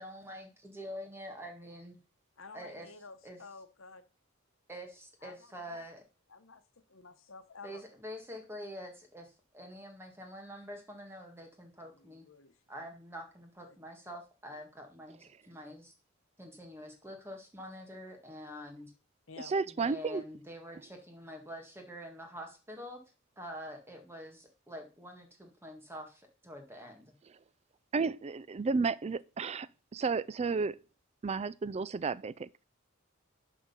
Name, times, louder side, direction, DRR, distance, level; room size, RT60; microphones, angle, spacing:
voice 1, 0.0-2.0 2.5-2.9 3.2-3.4 4.7-6.0 7.6-12.3 12.7-15.9 16.4-18.9 19.7-23.0 23.4-27.1, equal, 10° right, 1.8 m, -46 dB
voice 2, 2.4-4.0 5.2-5.4 5.7-5.8 6.3-6.6 6.9-7.8 12.0-12.5 13.7-13.8 19.3-19.5, left 4 dB, 70° left, 1.0 m, -51 dB
voice 3, 19.4-20.2 27.9-30.8 31.2-32.6, right 4 dB, 30° right, 0.4 m, -32 dB
11.0 x 3.8 x 5.5 m
head